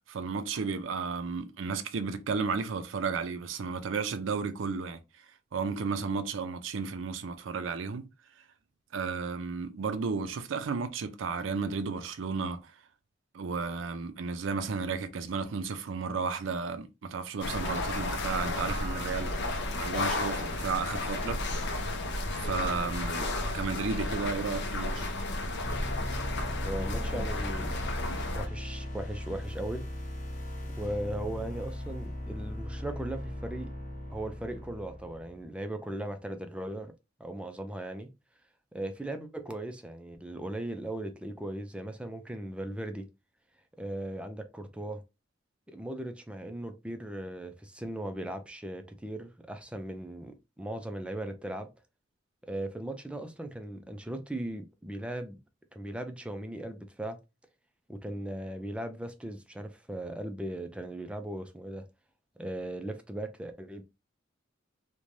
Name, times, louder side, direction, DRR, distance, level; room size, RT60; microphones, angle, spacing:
voice 1, 0.1-5.0 5.5-8.1 8.9-12.7 13.3-19.5 19.8-21.4 22.4-23.3 23.5-25.1, right 5 dB, 75° right, 0.4 m, -33 dB
sound 1, 17.4-28.5, left 2 dB, 65° left, 0.6 m, -33 dB
sound 2, 25.6-35.4, left 1 dB, 45° left, 1.1 m, -38 dB
voice 2, 26.6-27.7 28.3-29.8 30.7-33.7 34.1-36.9 37.2-38.1 38.7-43.0 43.8-45.0 45.7-51.7 52.4-55.4 55.7-57.2 57.9-61.8 62.4-63.8, right 1 dB, 5° right, 0.3 m, -38 dB
3.1 x 2.2 x 2.5 m
head